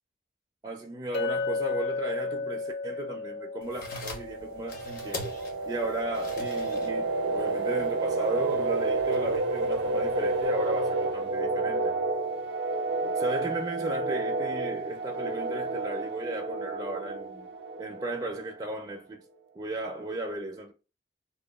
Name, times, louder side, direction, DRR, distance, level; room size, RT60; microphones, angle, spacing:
voice 1, 0.6-12.0 13.0-17.5 17.8-19.2 19.6-20.7, right 2 dB, 20° right, 0.4 m, -35 dB
Chink clink, 1.1-5.4, left 3 dB, 70° left, 0.4 m, -34 dB
sound 1, 3.6-10.5, left 2 dB, 55° left, 0.9 m, -44 dB
sound 2, 4.1-18.6, right 3 dB, 85° right, 0.5 m, -30 dB
2.9 x 2.2 x 2.2 m
head